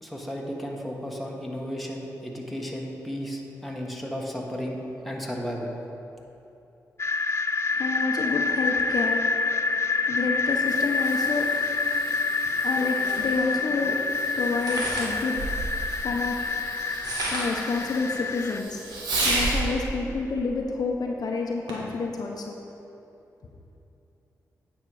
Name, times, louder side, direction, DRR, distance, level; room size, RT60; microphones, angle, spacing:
voice 1, 0.0-4.8 5.0-5.7, equal, ahead, -1 dB, 1.5 m, -34 dB
sound 1, 7.0-18.6, left 4 dB, 40° left, 0.4 m, -27 dB
voice 2, 7.7-18.9 19.2-22.6, left 3 dB, 65° left, 1 dB, 0.8 m, -30 dB
Fireworks, 10.4-19.7 21.7-22.0 22.7-22.8, right 2 dB, 90° right, 1.2 m, -35 dB
sound 2, 13.2-13.3 14.5-15.9 16.8-17.7 18.3-18.4 18.7-19.8, right 2 dB, 65° right, 1.9 m, -32 dB
9.0 x 5.3 x 4.7 m, 2.9 s
supercardioid pair, 45°, 7 cm